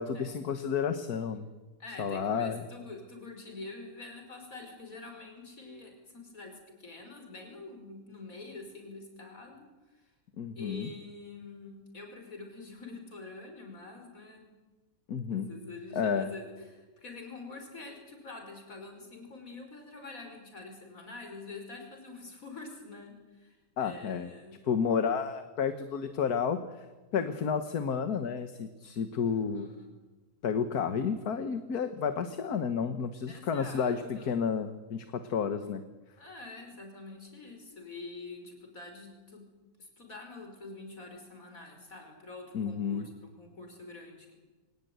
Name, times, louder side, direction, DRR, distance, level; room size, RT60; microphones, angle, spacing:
voice 1, 0.0-1.5 2.0-2.7 10.4-10.9 15.1-15.5 15.9-16.3 23.8-24.3 24.6-26.9 27.1-29.7 30.4-35.8 42.5-43.1, left 6 dB, 80° left, 9 dB, 1.8 m, -31 dB
voice 2, 1.8-9.7 10.6-14.5 15.3-24.6 29.3-29.9 33.3-34.4 36.2-39.5 39.8-44.4, left 3 dB, 65° left, 4 dB, 5.7 m, -46 dB
24.0 x 18.5 x 9.3 m, 1.2 s
omnidirectional pair, 1.6 m